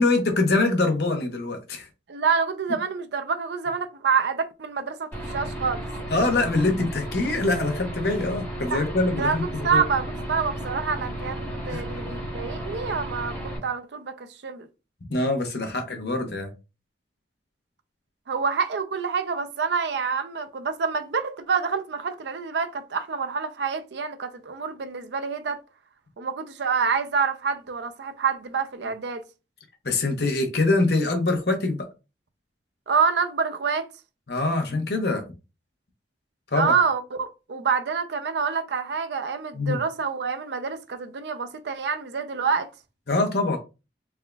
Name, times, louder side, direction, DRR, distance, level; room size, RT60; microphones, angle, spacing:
voice 1, 0.0-1.9 6.1-9.4 9.7-9.8 11.7-11.8 15.1-16.5 29.8-31.8 34.3-35.2 36.5-36.7 39.5-39.8 43.1-43.6, left 2 dB, 65° left, 0.9 m, -24 dB
voice 2, 2.1-5.8 8.7-8.9 9.2-14.7 18.3-25.6 26.2-29.2 32.9-33.9 36.6-42.7, right 5 dB, 75° right, 0.5 m, -27 dB
Aircraft / Engine, 5.1-13.6, right 1 dB, 15° left, 1.8 m, -33 dB
3.5 x 3.5 x 2.3 m
head